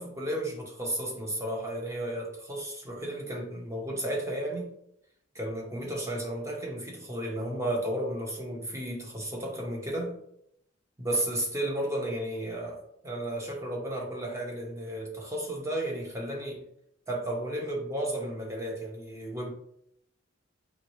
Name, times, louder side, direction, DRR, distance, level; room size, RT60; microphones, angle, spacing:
voice 1, 0.0-4.7 5.3-10.2 11.0-16.6 17.1-19.5, right 1 dB, 15° right, -1 dB, 0.9 m, -33 dB
4.4 x 3.1 x 3.0 m, 0.73 s
head